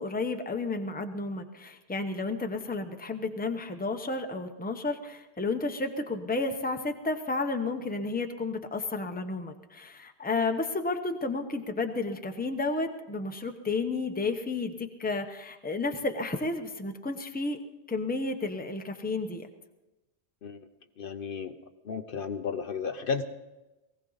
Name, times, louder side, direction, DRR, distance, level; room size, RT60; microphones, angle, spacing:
voice 1, 0.0-17.6 17.9-19.5, left 3 dB, 10° left, 5 dB, 0.8 m, -32 dB
voice 2, 21.0-21.6 21.8-23.2, left 5 dB, 60° left, 8 dB, 0.9 m, -33 dB
19.0 x 16.0 x 4.0 m, 1.1 s
omnidirectional pair, 1.1 m